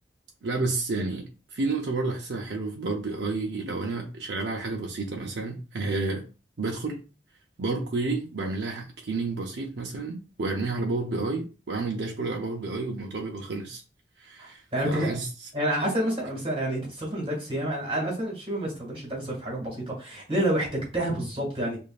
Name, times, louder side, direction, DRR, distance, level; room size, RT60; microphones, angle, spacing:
voice 1, 0.4-6.2 6.6-7.0 7.6-13.8 14.2-15.3, right 3 dB, 80° right, 0.6 m, -30 dB
voice 2, 14.4-15.1 15.5-21.8, right 1 dB, 35° right, 1.9 m, -29 dB
5.0 x 2.6 x 2.4 m
head